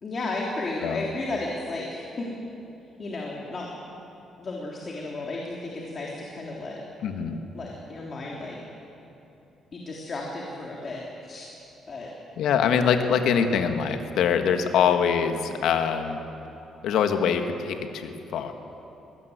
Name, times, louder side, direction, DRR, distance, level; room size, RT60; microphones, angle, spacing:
voice 1, 0.0-2.3 3.0-3.7 4.4-6.8 7.5-8.6 9.7-11.5 11.9-12.1 13.0-13.1, left 2 dB, 45° left, -2 dB, 3.4 m, -33 dB
voice 2, 7.0-7.4 12.4-16.2 16.8-18.5, left 7 dB, 80° left, 7 dB, 1.6 m, -24 dB
22.5 x 18.5 x 8.1 m, 3.0 s
cardioid pair, 90°, 0 cm